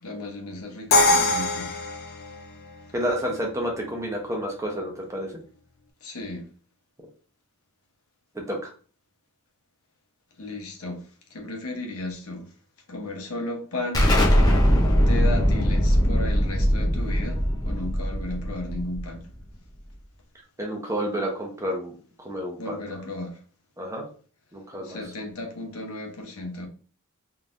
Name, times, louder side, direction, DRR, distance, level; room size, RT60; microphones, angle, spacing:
voice 1, 0.0-1.8 6.0-6.5 10.4-12.5 12.9-14.1 15.0-19.2 22.6-23.4 24.8-26.7, left 2 dB, 85° left, 1.1 m, -34 dB
Crash cymbal, 0.9-2.8, left 2 dB, 45° left, 0.6 m, -22 dB
voice 2, 2.9-5.3 8.3-8.7 20.6-21.9 22.2-22.8 23.8-24.0 24.5-25.0, equal, 15° right, 0.9 m, -30 dB
Explosion, 13.9-19.4, equal, 20° left, 0.8 m, -21 dB
3.9 x 3.3 x 2.6 m
head